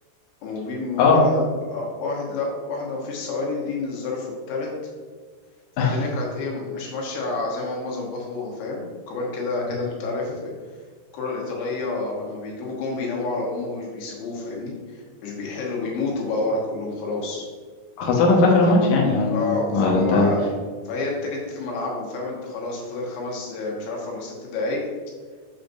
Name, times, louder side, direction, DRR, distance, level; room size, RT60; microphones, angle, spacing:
voice 1, 0.4-4.7 5.8-10.5 11.1-17.5 19.3-20.4 20.9-24.8, left 3 dB, 90° left, -2 dB, 3.6 m, -29 dB
voice 2, 18.0-20.3, left 3 dB, 65° left, -2 dB, 2.4 m, -18 dB
7.4 x 6.8 x 2.6 m, 1.5 s
omnidirectional pair, 5.0 m